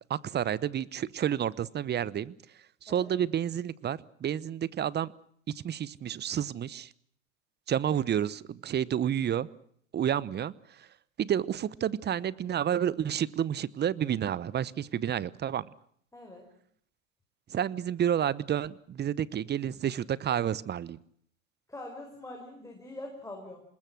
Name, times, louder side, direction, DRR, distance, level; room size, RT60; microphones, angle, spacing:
voice 1, 0.1-2.3 2.8-5.1 5.5-6.9 7.7-9.5 9.9-10.5 10.8-10.9 11.2-15.7 17.5-21.0, right 9 dB, 25° right, 21 dB, 0.9 m, -30 dB
voice 2, 16.1-16.5 21.7-23.6, left 1 dB, 10° left, 1 dB, 5.3 m, -43 dB
26.0 x 20.5 x 6.2 m, 0.64 s
hypercardioid pair, 90°, 39 cm